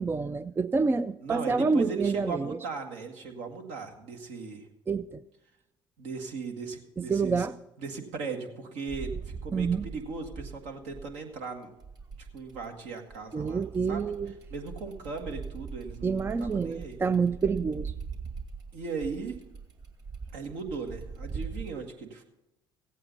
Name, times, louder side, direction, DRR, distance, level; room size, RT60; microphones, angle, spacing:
voice 1, 0.0-2.6 4.9-5.2 7.0-7.6 9.5-9.9 13.3-14.3 16.0-17.9, right 4 dB, 20° right, 14 dB, 0.4 m, -28 dB
voice 2, 1.2-4.6 6.0-7.5 7.8-11.7 12.3-13.6 13.9-14.0 14.5-17.0 18.7-19.4 20.3-22.2, right 4 dB, 65° right, 3 dB, 1.8 m, -38 dB
sound 1, 8.9-11.3 11.8-21.7, right 5 dB, 35° right, 2.1 m, -41 dB
16.0 x 8.4 x 5.4 m, 0.92 s
hypercardioid pair, 60°, 12 cm